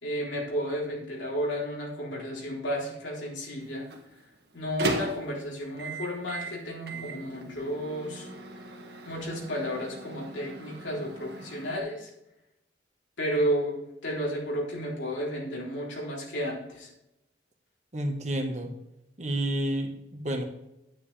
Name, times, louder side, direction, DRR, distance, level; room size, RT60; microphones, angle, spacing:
voice 1, 0.0-3.9 4.5-8.3 9.1-12.1 13.2-16.9, equal, 90° left, -3 dB, 3.6 m, -32 dB
Microwave oven, 3.6-11.8, right 2 dB, 60° right, 1.6 m, -38 dB
voice 2, 17.9-18.7 19.2-20.4, right 1 dB, 40° right, 3 dB, 1.5 m, -30 dB
9.8 x 9.4 x 3.4 m, 0.87 s
head